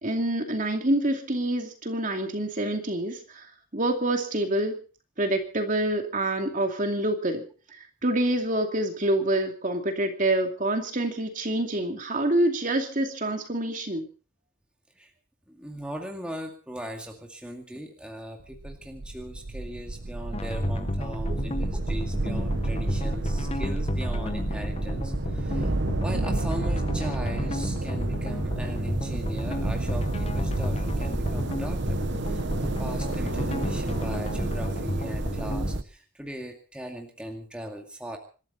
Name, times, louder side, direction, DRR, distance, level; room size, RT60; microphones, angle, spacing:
voice 1, 0.0-4.8 5.2-7.4 7.7-14.0 21.3-21.4, right 1 dB, 35° right, 4 dB, 2.6 m, -27 dB
voice 2, 15.5-25.7 26.0-38.2, right 1 dB, 5° right, 2 dB, 2.2 m, -39 dB
sound 1, 18.4-35.8, right 2 dB, 55° right, 1.0 m, -30 dB
sound 2, 20.3-35.8, left 1 dB, 30° left, 0.9 m, -33 dB
26.5 x 13.0 x 4.1 m, 0.38 s
head